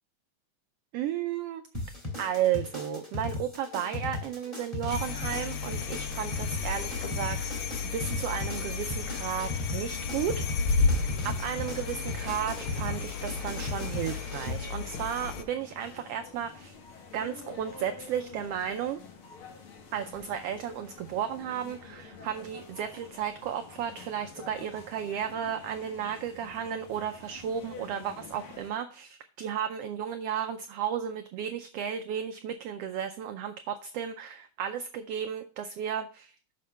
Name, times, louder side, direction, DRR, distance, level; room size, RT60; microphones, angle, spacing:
voice 1, 0.9-1.6 2.2-7.5 7.9-10.3 10.7-16.7 17.1-19.0 19.9-36.3, right 9 dB, 90° right, 7 dB, 1.3 m, -34 dB
sound 1, 1.7-14.5, left 2 dB, 15° left, 2.2 m, -37 dB
sound 2, 4.9-15.4, left 4 dB, 75° left, 1.2 m, -32 dB
sound 3, 11.8-28.7, left 5 dB, 55° left, 1.9 m, -48 dB
6.4 x 5.8 x 5.5 m, 0.41 s
omnidirectional pair, 3.3 m